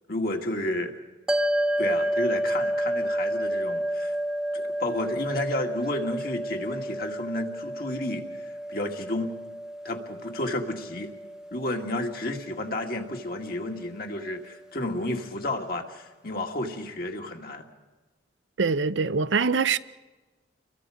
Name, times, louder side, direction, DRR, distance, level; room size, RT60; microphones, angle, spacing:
voice 1, 0.1-0.9 1.8-4.1 4.5-9.3 9.8-11.1 11.5-17.7, left 1 dB, 50° left, 2.2 m, -31 dB
sound 1, 1.3-13.8, right 1 dB, 5° right, 0.7 m, -30 dB
voice 2, 18.6-19.8, right 5 dB, 85° right, 0.7 m, -23 dB
29.0 x 22.5 x 5.1 m
head